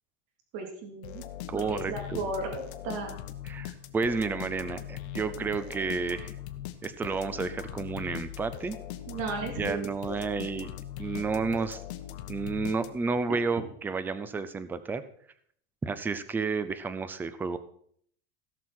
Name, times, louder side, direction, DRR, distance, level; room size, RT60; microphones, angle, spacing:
voice 1, 0.5-1.2 1.7-3.2 9.1-10.2, right 3 dB, 50° right, 1 dB, 3.1 m, -35 dB
sound 1, 1.0-13.2, left 12 dB, 75° left, 1.2 m, -40 dB
voice 2, 1.5-2.2 3.4-6.4 6.8-8.8 9.4-10.7 11.0-11.8 12.3-15.0 15.8-17.6, right 4 dB, 5° right, 13 dB, 0.3 m, -31 dB
17.0 x 6.3 x 4.3 m, 0.64 s
supercardioid pair, 160°, 33 cm